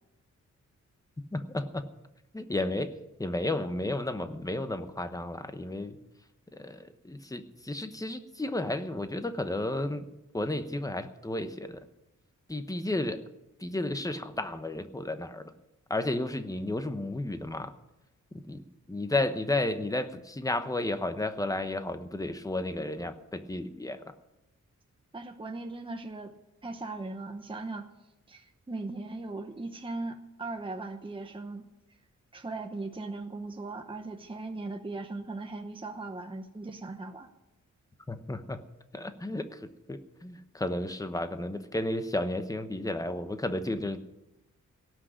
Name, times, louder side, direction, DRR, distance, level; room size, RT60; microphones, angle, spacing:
voice 1, 1.3-1.8 2.3-2.9 3.2-6.0 6.5-10.0 10.3-11.9 12.5-13.2 13.6-15.5 15.9-17.7 18.5-18.6 18.9-24.0 38.1-38.6 38.9-44.0, left 2 dB, 10° left, 9 dB, 0.9 m, -32 dB
voice 2, 25.1-26.3 26.6-27.9 28.3-31.7 32.3-37.3, right 3 dB, 15° right, 5 dB, 0.9 m, -38 dB
17.5 x 6.3 x 10.0 m, 0.94 s
wide cardioid pair, 135°, 30 cm